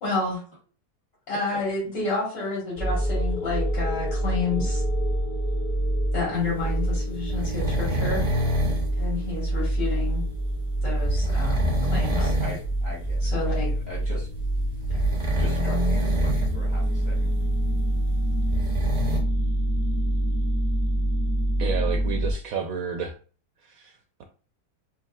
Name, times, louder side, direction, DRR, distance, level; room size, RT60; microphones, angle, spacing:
voice 1, 0.0-0.4 1.3-4.8 6.1-8.3 9.0-10.2 10.8-12.3 13.2-13.7 14.9-15.0, left 3 dB, 90° left, -6 dB, 2.4 m, -30 dB
voice 2, 1.3-1.6 12.1-13.6 13.9-14.3 15.4-17.3, left 1 dB, 40° left, -6 dB, 1.4 m, -40 dB
sound 1, 2.8-22.3, right 1 dB, 55° left, 0.7 m, -26 dB
sound 2, 7.3-8.9 11.0-12.6 13.0-13.1 14.9-16.6 16.8-16.9 18.3-19.2, equal, 55° right, 0.4 m, -27 dB
voice 3, 21.6-23.1 23.6-24.2, right 6 dB, 70° right, 5 dB, 0.8 m, -31 dB
4.7 x 2.9 x 2.3 m, 0.39 s
omnidirectional pair, 1.9 m